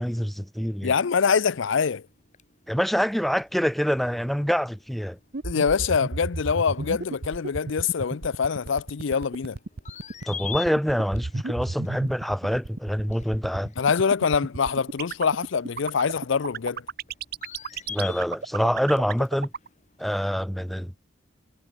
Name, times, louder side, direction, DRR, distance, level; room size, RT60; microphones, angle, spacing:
voice 1, 0.0-0.9 2.7-5.2 10.3-13.7 17.9-19.5 20.0-21.1, equal, ahead, 0.3 m, -26 dB
voice 2, 0.8-2.0 5.4-9.6 13.8-16.8, left 6 dB, 70° left, 0.5 m, -24 dB
sound 1, 2.0-20.3, left 7 dB, 35° left, 4.0 m, -46 dB
sound 2, 5.3-19.7, right 3 dB, 50° right, 0.8 m, -32 dB
head